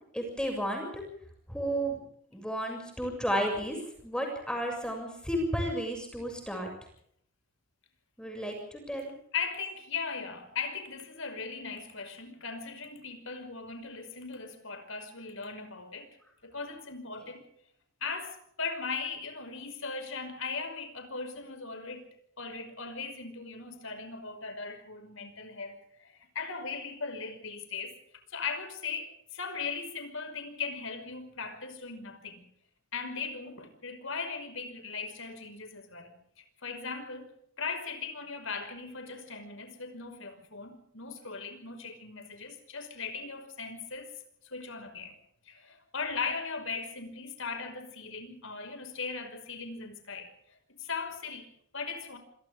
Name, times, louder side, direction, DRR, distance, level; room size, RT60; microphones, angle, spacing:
voice 1, 0.1-1.0 1.5-2.0 2.3-3.8 4.0-6.7 8.2-9.1, equal, 5° left, 6.9 m, -32 dB
voice 2, 9.3-16.2 16.4-17.5 18.0-22.1 22.4-28.0 28.3-32.5 32.9-37.3 37.6-44.1 44.4-45.2 45.5-52.2, left 5 dB, 65° left, 5.5 m, -38 dB
28.0 x 26.5 x 3.7 m
head